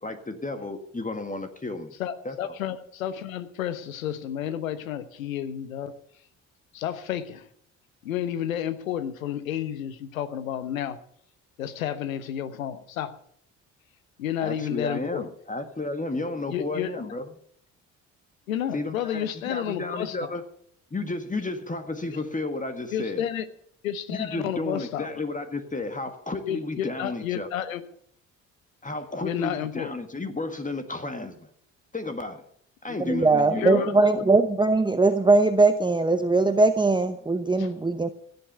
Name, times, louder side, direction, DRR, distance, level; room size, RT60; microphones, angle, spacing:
voice 1, 0.0-1.9 2.2-2.6 14.4-17.3 18.7-20.4 20.9-23.2 24.1-27.5 28.8-31.5 31.9-32.5 32.8-34.0, left 2 dB, 20° left, 8 dB, 1.8 m, -32 dB
voice 2, 2.0-5.9 6.7-7.5 8.0-11.0 11.6-13.1 14.2-15.2 16.5-17.1 18.5-20.3 22.9-23.4 23.8-25.1 26.5-27.8 29.2-29.9 32.9-33.0 33.6-34.1 37.6-37.7, left 10 dB, 85° left, 14 dB, 1.0 m, -31 dB
voice 3, 33.1-38.1, right 3 dB, 10° right, 9 dB, 0.9 m, -20 dB
16.5 x 7.9 x 6.8 m, 0.65 s
hypercardioid pair, 50°, 40 cm